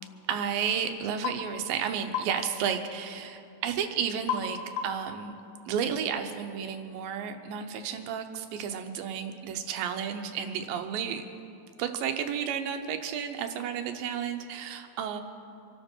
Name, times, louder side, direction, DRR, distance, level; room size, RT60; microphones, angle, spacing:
voice 1, 0.3-4.6 4.8-5.3 5.7-11.3 11.8-15.2, right 8 dB, 80° right, 6 dB, 2.6 m, -32 dB
sound 1, 1.2-1.4 2.1-2.4 4.3-4.5 4.8-5.1, left 7 dB, 70° left, 2.9 m, -31 dB
25.5 x 12.0 x 4.5 m, 2.6 s
omnidirectional pair, 4.1 m